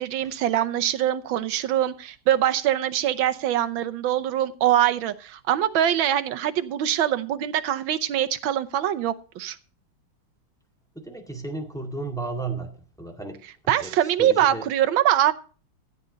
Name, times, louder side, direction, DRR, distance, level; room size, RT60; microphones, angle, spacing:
voice 1, 0.0-9.6 13.7-15.3, right 11 dB, 70° right, 10 dB, 1.5 m, -23 dB
voice 2, 10.9-12.7 13.0-13.4 13.8-13.9 14.2-14.6, right 3 dB, ahead, 2 dB, 1.7 m, -33 dB
14.5 x 8.9 x 3.9 m, 0.36 s
omnidirectional pair, 2.4 m